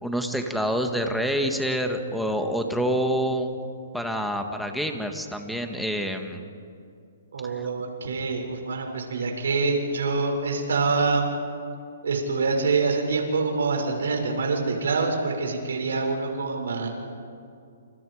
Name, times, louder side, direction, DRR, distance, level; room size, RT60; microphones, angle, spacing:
voice 1, 0.0-3.5 3.9-6.4, equal, ahead, 4 dB, 1.8 m, -27 dB
voice 2, 7.3-11.3 12.0-16.9, right 4 dB, 80° right, 2 dB, 6.5 m, -25 dB
29.5 x 29.5 x 5.1 m, 2.4 s
hypercardioid pair, 155°, 0 cm